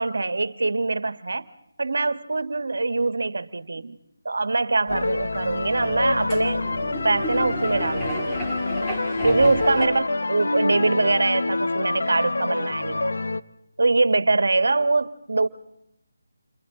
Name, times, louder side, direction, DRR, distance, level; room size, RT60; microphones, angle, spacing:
voice 1, 0.0-1.4 1.8-4.0 4.2-6.6 7.0-8.4 9.2-13.1 13.8-15.5, right 3 dB, 70° right, 13 dB, 1.5 m, -23 dB
sound 1, 4.9-13.4, left 2 dB, 70° left, 1.2 m, -27 dB
sound 2, 4.9-9.9, left 1 dB, 10° left, 2.4 m, -33 dB
29.5 x 29.0 x 3.8 m, 0.82 s
figure-of-eight pair, 165°, 0 cm